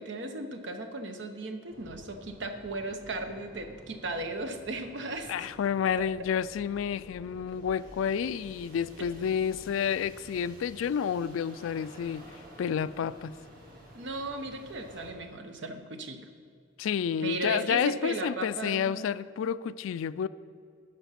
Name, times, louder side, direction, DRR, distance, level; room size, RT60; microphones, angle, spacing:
voice 1, 0.0-5.5 6.0-6.1 9.0-9.1 13.9-16.2 17.2-19.0, right 2 dB, 65° right, 6 dB, 0.9 m, -36 dB
sound 1, 1.7-15.1, equal, 45° right, 1.8 m, -51 dB
voice 2, 5.3-12.2 12.6-13.3 16.8-20.3, left 8 dB, 85° left, 17 dB, 0.3 m, -30 dB
12.5 x 5.2 x 5.8 m, 2.4 s
head